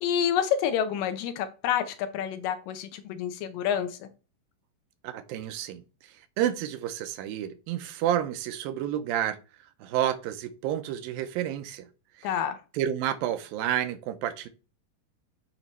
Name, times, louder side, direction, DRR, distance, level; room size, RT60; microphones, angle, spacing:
voice 1, 0.0-4.1 12.2-12.6, left 9 dB, 80° left, 10 dB, 2.4 m, -28 dB
voice 2, 5.0-5.8 6.4-9.4 9.8-11.9 12.2-12.4 12.7-14.5, right 11 dB, 85° right, 9 dB, 2.6 m, -30 dB
8.6 x 3.1 x 5.4 m, 0.34 s
omnidirectional pair, 4.0 m